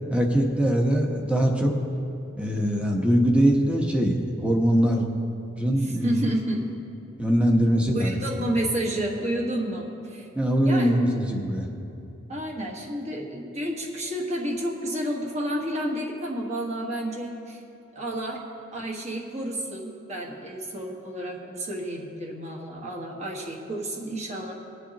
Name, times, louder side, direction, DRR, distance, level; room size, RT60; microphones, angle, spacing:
voice 1, 0.1-1.7 2.4-5.1 5.6-6.2 7.2-8.2 10.3-11.7, equal, 5° right, 1 dB, 1.0 m, -22 dB
voice 2, 6.0-6.7 7.9-10.3 10.6-11.1 12.3-17.6 17.9-18.4 18.7-24.5, right 1 dB, 35° right, -2 dB, 1.5 m, -30 dB
21.0 x 8.1 x 2.9 m, 2.7 s
head